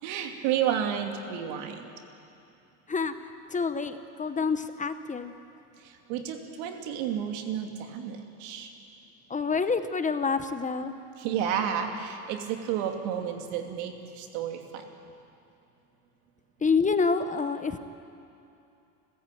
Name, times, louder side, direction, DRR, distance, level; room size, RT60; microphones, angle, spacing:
voice 1, 0.0-1.9 5.8-8.7 11.2-14.9, right 9 dB, 85° right, 4 dB, 2.8 m, -31 dB
voice 2, 2.9-5.3 9.3-10.9 16.6-17.8, left 5 dB, 20° left, 10 dB, 0.9 m, -27 dB
29.5 x 14.5 x 9.3 m, 2.7 s
cardioid pair, 130°, 42 cm